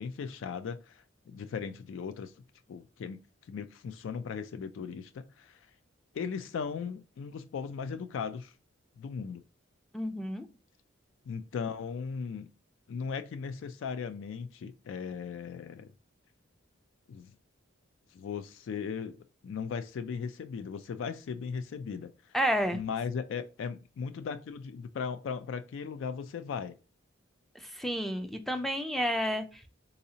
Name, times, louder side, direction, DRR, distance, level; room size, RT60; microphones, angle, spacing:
voice 1, 0.0-2.3 2.7-3.2 3.5-5.7 6.1-8.5 9.0-9.4 11.3-12.5 12.9-15.9 17.1-17.3 18.1-19.2 19.4-22.4 22.7-26.8, left 6 dB, 75° left, 0.3 m, -37 dB
voice 2, 9.9-10.5 22.3-22.8 27.5-29.6, equal, ahead, 0.4 m, -30 dB
4.0 x 2.7 x 2.7 m
head